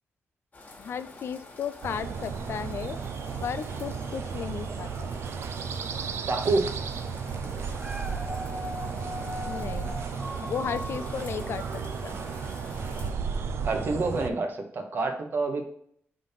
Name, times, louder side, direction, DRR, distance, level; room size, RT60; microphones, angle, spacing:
sound 1, 0.5-13.1, left 2 dB, 35° left, 1.6 m, -48 dB
voice 1, 0.8-3.0 3.4-5.1 9.5-10.0 10.4-12.2, left 7 dB, 60° left, 14 dB, 0.3 m, -35 dB
sound 2, 1.8-14.3, right 5 dB, 65° right, 0.5 m, -34 dB
voice 2, 6.2-6.7 7.6-7.7 13.6-15.6, right 3 dB, 50° right, 4 dB, 1.2 m, -27 dB
Dog, 7.7-12.9 13.4-13.5, left 1 dB, 5° right, 0.6 m, -40 dB
5.1 x 3.8 x 5.6 m, 0.64 s
cardioid pair, 125°, 5 cm